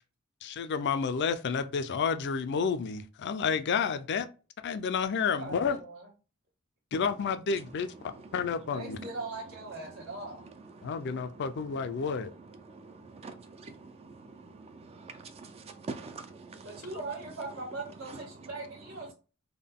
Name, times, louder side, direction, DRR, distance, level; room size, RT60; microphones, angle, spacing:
voice 1, 0.4-4.3 4.6-5.8 6.9-7.9 8.3-9.0 10.8-12.3, left 6 dB, 55° left, 0.4 m, -30 dB
voice 2, 5.3-6.1 8.7-10.4 16.6-19.1, right 3 dB, 85° right, 1.4 m, -40 dB
voice 3, 7.6-9.2 9.8-17.6 18.0-19.1, right 3 dB, 30° right, 0.3 m, -47 dB
3.7 x 2.2 x 3.5 m
head